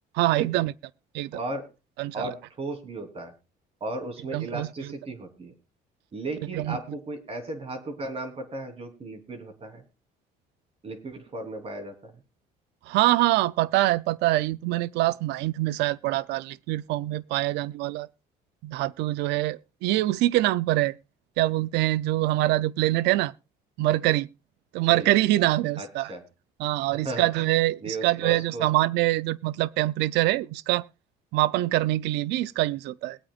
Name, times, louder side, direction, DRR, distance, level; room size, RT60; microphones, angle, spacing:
voice 1, 0.2-0.7 1.1-1.3 2.0-2.3 4.3-4.7 6.5-6.8 12.9-18.1 18.6-21.0 21.4-23.3 23.8-24.3 24.7-26.1 26.6-30.8 31.3-33.2, right 17 dB, 85° right, 0.5 m, -24 dB
voice 2, 1.3-1.7 2.1-3.3 3.8-5.5 6.1-9.8 10.8-12.1 24.9-25.1 25.8-26.2 26.9-27.3 27.8-28.6, right 2 dB, 35° right, 3.3 m, -35 dB
22.0 x 8.5 x 2.4 m
cardioid pair, 110°, 17 cm